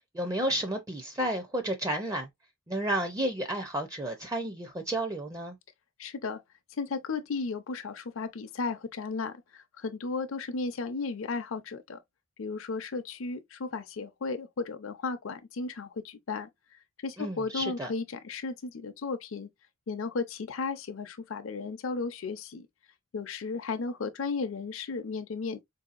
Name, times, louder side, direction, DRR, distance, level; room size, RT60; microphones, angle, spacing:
voice 1, 0.1-2.3 2.7-5.6 17.2-17.9, right 1 dB, 15° right, 0.5 m, -31 dB
voice 2, 6.0-6.4 6.8-12.0 12.4-16.5 17.0-19.5 19.9-22.7 23.1-25.6, left 4 dB, 75° left, 0.5 m, -34 dB
4.4 x 2.7 x 2.4 m
head